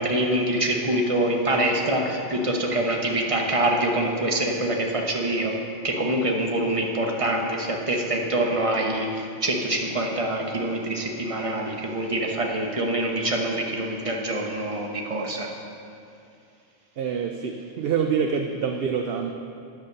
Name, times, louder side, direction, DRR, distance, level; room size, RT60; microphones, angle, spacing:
voice 1, 0.0-5.5 5.8-15.5, right 1 dB, 30° right, 0 dB, 1.1 m, -25 dB
voice 2, 17.0-19.3, right 6 dB, 60° right, 4 dB, 0.7 m, -26 dB
9.8 x 6.9 x 6.5 m, 2.5 s
omnidirectional pair, 1.2 m